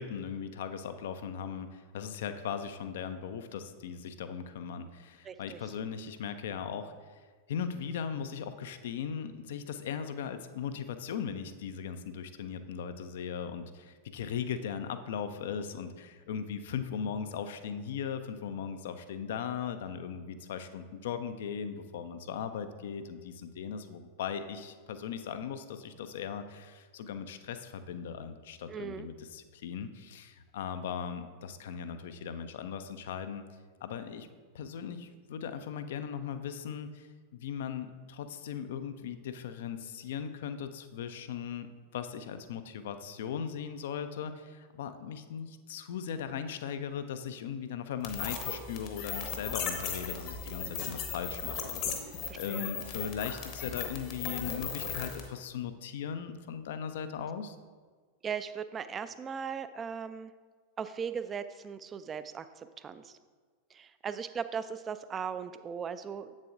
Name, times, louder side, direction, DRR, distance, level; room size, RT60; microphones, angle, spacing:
voice 1, 0.0-7.2 7.5-33.4 33.8-34.3 34.5-37.1 37.3-57.6, left 7 dB, 55° left, 10 dB, 0.4 m, -38 dB
voice 2, 5.2-5.6 28.7-29.1 52.3-52.7 58.2-60.3 60.8-63.2 63.7-66.3, right 7 dB, 20° right, 12 dB, 0.3 m, -38 dB
sound 1, 48.0-55.3, left 6 dB, 40° left, 0.9 m, -37 dB
7.6 x 7.3 x 2.5 m, 1.5 s
figure-of-eight pair, 90°, 0 cm